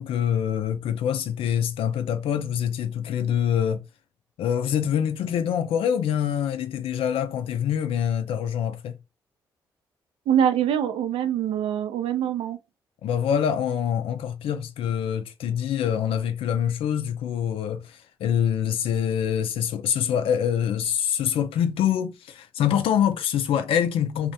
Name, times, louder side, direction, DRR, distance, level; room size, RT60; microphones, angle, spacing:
voice 1, 0.0-3.9 4.4-9.0 13.0-24.3, left 9 dB, 70° left, 0.4 m, -25 dB
voice 2, 10.3-12.6, right 9 dB, 75° right, 0.4 m, -24 dB
2.4 x 2.1 x 2.7 m
hypercardioid pair, 45°, 10 cm